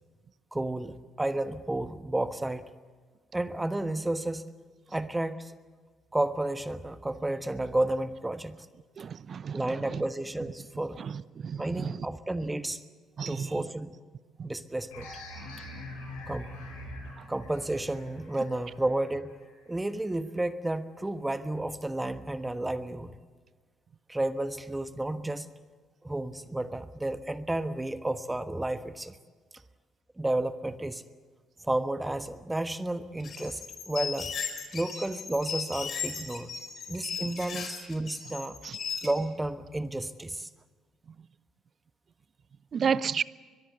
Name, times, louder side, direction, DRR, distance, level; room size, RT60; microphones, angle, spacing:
voice 1, 0.5-2.6 3.3-4.4 4.9-5.5 6.1-8.6 9.5-11.0 11.6-12.8 13.3-13.9 14.4-15.1 16.3-16.5 17.3-19.4 19.7-23.1 24.1-25.5 26.0-29.2 30.2-31.0 31.6-33.6 33.9-34.3 34.7-36.5 36.9-38.6 39.0-40.5, right 1 dB, 15° right, 1.3 m, -31 dB
voice 2, 9.0-9.6 11.4-11.9 13.2-13.5 42.7-43.2, right 7 dB, 50° right, 0.7 m, -30 dB
sound 1, 14.9-20.2, left 1 dB, 85° left, 6.7 m, -44 dB
sound 2, 33.2-39.1, left 6 dB, 55° left, 4.7 m, -36 dB
22.5 x 22.0 x 8.0 m
hypercardioid pair, 50°, 0 cm